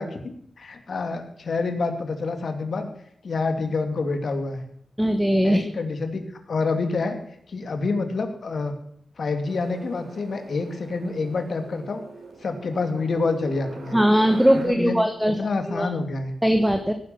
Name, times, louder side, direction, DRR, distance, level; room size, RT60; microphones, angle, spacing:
voice 1, 0.0-2.9 3.2-4.6 5.4-7.2 7.5-8.7 9.2-12.0 12.4-14.0 14.5-15.0 15.4-16.3, left 3 dB, 65° left, 7 dB, 2.4 m, -27 dB
voice 2, 5.0-5.6 13.9-15.3 15.7-15.9 16.4-16.9, equal, 5° right, 7 dB, 1.2 m, -20 dB
sound 1, 9.5-14.6, right 3 dB, 90° right, 4.3 m, -41 dB
17.5 x 11.0 x 5.9 m, 0.65 s
wide cardioid pair, 100°, 0 cm